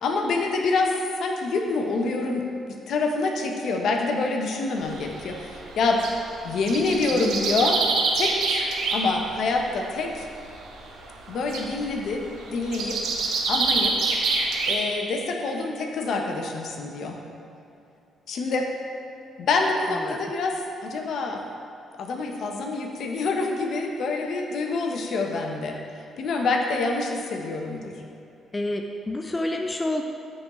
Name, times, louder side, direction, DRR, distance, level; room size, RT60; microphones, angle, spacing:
voice 1, 0.0-6.0 6.4-7.8 8.2-8.6 8.9-10.3 11.3-12.2 12.5-13.0 13.5-14.0 14.7-17.2 18.3-18.7 19.4-20.5 20.8-21.4 22.0-25.8 26.2-27.9, left 3 dB, 70° left, 2 dB, 0.7 m, -26 dB
sound 1, 4.8-6.2 6.5-9.2 9.4-9.9 10.5-11.0 11.3-14.8, right 3 dB, 85° right, 0.7 m, -26 dB
voice 2, 28.5-30.0, left 1 dB, 20° left, 4 dB, 0.3 m, -28 dB
9.6 x 3.8 x 3.0 m, 2.6 s
cardioid pair, 90°, 0 cm